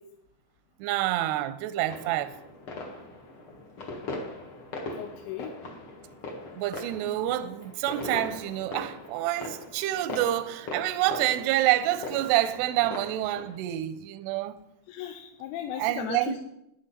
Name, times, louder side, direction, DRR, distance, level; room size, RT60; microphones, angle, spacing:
voice 1, 0.8-2.3 6.5-14.6 15.7-16.4, right 14 dB, 85° right, 2.4 m, -27 dB
sound 1, 1.8-13.6, left 2 dB, 60° left, 1.4 m, -40 dB
voice 2, 5.0-5.5 14.9-16.4, left 10 dB, 90° left, 3.0 m, -36 dB
11.5 x 10.5 x 4.1 m
omnidirectional pair, 5.1 m